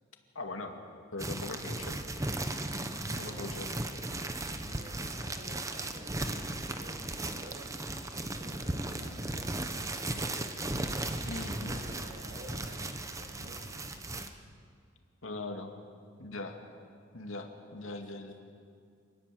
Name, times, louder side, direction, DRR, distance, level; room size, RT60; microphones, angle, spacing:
voice 1, 0.3-0.8 1.1-2.0 3.1-3.7 11.2-11.7 15.2-15.7 16.2-16.6 17.1-18.3, left 2 dB, 85° left, 4 dB, 2.4 m, -40 dB
sound 1, 1.2-14.3, right 2 dB, 15° right, 1.1 m, -36 dB
voice 2, 3.0-7.7 8.4-10.9 11.2-13.9 17.8-18.3, right 1 dB, 40° right, 2 dB, 4.8 m, -53 dB
sound 2, 4.4-10.4, equal, 20° left, 6.4 m, -58 dB
27.0 x 20.0 x 7.8 m, 2.3 s
head